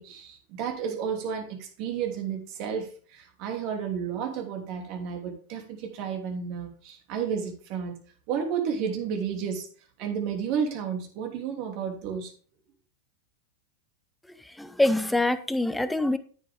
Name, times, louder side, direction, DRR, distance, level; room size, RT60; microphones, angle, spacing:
voice 1, 0.0-8.0 8.3-9.7 10.0-12.3, right 7 dB, 50° right, 3 dB, 3.0 m, -32 dB
voice 2, 14.6-16.2, left 2 dB, 5° left, 12 dB, 1.0 m, -24 dB
10.5 x 9.3 x 3.6 m, 0.41 s
hypercardioid pair, 95°, 0 cm